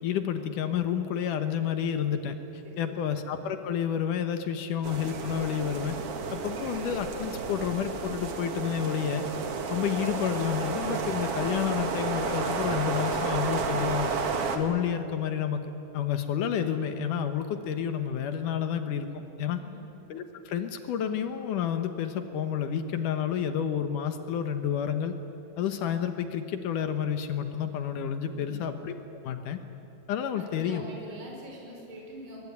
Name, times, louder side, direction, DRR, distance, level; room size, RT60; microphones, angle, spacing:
voice 1, 0.0-2.4 2.8-6.0 6.3-9.2 9.7-14.1 14.5-15.6 15.9-19.6 20.1-25.1 25.6-29.0 29.2-29.6 30.1-30.8, left 8 dB, 75° left, 8 dB, 2.6 m, -30 dB
voice 2, 2.6-3.1 19.6-19.8 28.3-28.6 30.4-32.4, equal, 35° right, -2 dB, 5.6 m, -44 dB
sound 1, 4.8-14.6, right 5 dB, 50° right, 2.3 m, -31 dB
23.0 x 21.5 x 9.7 m, 2.8 s
omnidirectional pair, 3.9 m